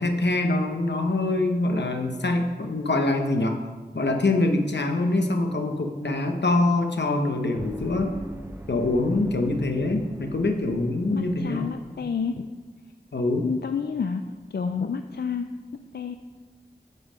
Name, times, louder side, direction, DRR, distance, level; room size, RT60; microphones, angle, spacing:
voice 1, 0.0-3.6 3.9-8.1 8.7-11.7 13.1-13.5, left 2 dB, 90° left, 5 dB, 0.9 m, -24 dB
sound 1, 7.5-12.3, right 1 dB, 15° right, 0.5 m, -42 dB
voice 2, 11.1-12.5 13.4-14.2 14.5-15.5 15.9-16.1, left 6 dB, 70° left, 7 dB, 0.4 m, -29 dB
9.3 x 5.5 x 5.1 m, 1.4 s
wide cardioid pair, 55°, 17 cm